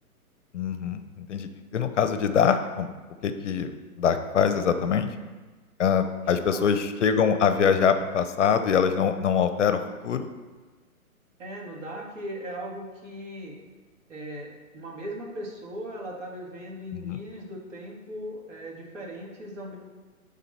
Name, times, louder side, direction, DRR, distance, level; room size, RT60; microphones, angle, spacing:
voice 1, 0.5-2.9 3.2-3.7 4.0-5.1 5.8-10.3 17.0-17.2, left 7 dB, 55° left, 9 dB, 0.6 m, -24 dB
voice 2, 6.2-6.7 11.4-13.5 14.1-19.8, equal, 55° right, -1 dB, 2.2 m, -38 dB
10.5 x 3.8 x 4.2 m, 1.3 s
figure-of-eight pair, 130°, 44 cm